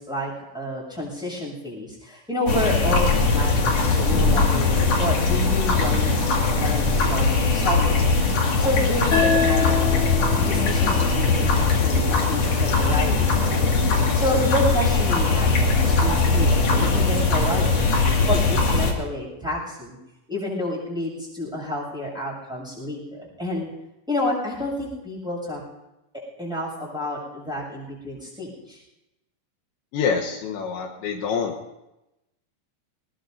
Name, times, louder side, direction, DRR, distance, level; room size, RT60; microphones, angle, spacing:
voice 1, 0.0-6.2 6.5-17.9 18.3-20.0 20.3-23.7 24.1-25.6 26.4-28.8, left 1 dB, ahead, -4 dB, 7.1 m, -29 dB
sound 1, 2.5-18.9, left 3 dB, 45° left, 2.8 m, -20 dB
sound 2, 9.1-12.3, left 5 dB, 60° left, 4.8 m, -27 dB
voice 2, 29.9-31.5, left 6 dB, 75° left, 0 dB, 3.4 m, -26 dB
23.5 x 19.5 x 2.8 m, 0.93 s
omnidirectional pair, 5.4 m